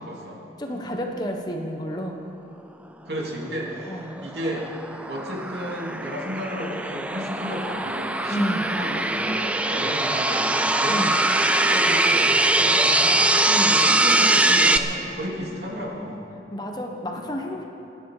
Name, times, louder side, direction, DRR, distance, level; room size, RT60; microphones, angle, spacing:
voice 1, 0.0-0.8 3.0-4.7 5.1-11.2 11.5-13.3 13.6-16.2 17.1-17.2, equal, 70° right, -2 dB, 3.1 m, -33 dB
voice 2, 0.6-2.2 3.9-4.1 8.3-8.6 10.9-11.1 13.5-13.8 16.5-17.6, equal, 25° left, 2 dB, 1.2 m, -30 dB
sound 1, 4.0-14.8, right 2 dB, 5° right, 0.5 m, -22 dB
28.0 x 9.8 x 5.0 m, 2.8 s
head